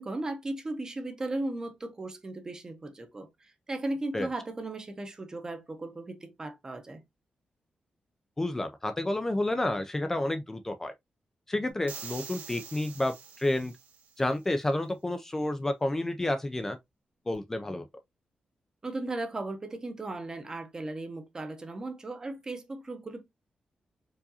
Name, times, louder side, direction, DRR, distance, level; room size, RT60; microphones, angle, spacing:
voice 1, 0.0-7.0 18.8-23.2, right 2 dB, 25° right, 0.7 m, -36 dB
voice 2, 8.4-10.9 11.5-13.7 14.2-16.8 17.3-17.9, left 1 dB, 15° left, 0.4 m, -30 dB
sound 1, 11.9-14.2, right 6 dB, 85° right, 0.9 m, -45 dB
4.7 x 2.5 x 2.7 m
wide cardioid pair, 160°, 3 cm